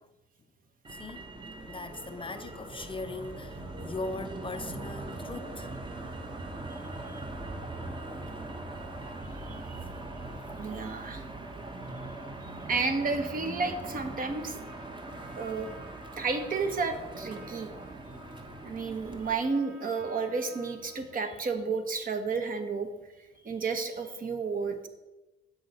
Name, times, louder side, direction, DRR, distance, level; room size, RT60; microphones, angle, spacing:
Motor vehicle (road), 0.8-19.3, right 2 dB, 25° right, 1.1 m, -41 dB
voice 1, 0.9-1.3 1.7-5.7 11.8-12.0, left 3 dB, 25° left, 0.5 m, -40 dB
voice 2, 6.7-7.2 9.2-9.8 10.2-10.3 10.6-11.2 12.4-14.6 15.4-15.7 16.2-17.7 18.6-22.9 23.4-24.9, right 4 dB, 45° right, 1.1 m, -32 dB
Trumpet, 13.7-21.3, right 1 dB, 85° right, 1.6 m, -52 dB
8.0 x 6.2 x 4.2 m
cardioid pair, 90°, 20 cm